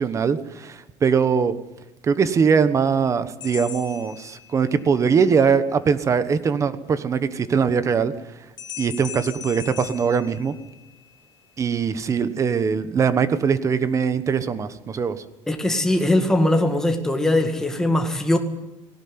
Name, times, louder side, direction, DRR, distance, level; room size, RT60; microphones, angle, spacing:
voice 1, 0.0-1.5 2.0-8.1 8.8-10.5 11.6-15.2, right 6 dB, 25° right, 1.2 m, -21 dB
sound 1, 3.4-4.9 8.6-11.1, left 9 dB, 35° left, 1.9 m, -39 dB
voice 2, 15.5-18.4, left 1 dB, 5° left, 1.9 m, -20 dB
19.5 x 18.0 x 9.6 m
cardioid pair, 175°, 13 cm